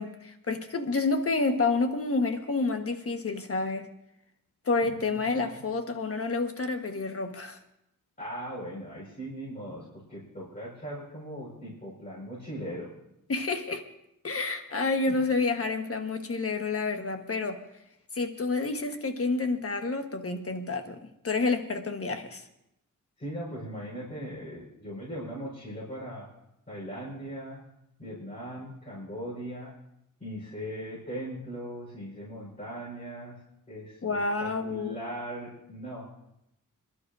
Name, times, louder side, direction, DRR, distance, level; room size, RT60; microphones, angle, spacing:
voice 1, 0.0-3.9 4.6-7.6 13.3-13.8 14.2-17.6 18.1-21.0 21.2-22.4 34.0-35.0, left 3 dB, 45° left, 6 dB, 1.3 m, -29 dB
voice 2, 8.2-12.9 15.1-15.2 23.2-26.3 26.7-27.7 28.0-29.7 30.2-33.4 33.7-36.2, equal, 25° left, -8 dB, 4.9 m, -39 dB
27.5 x 11.5 x 2.6 m, 0.81 s
wide cardioid pair, 150°, 32 cm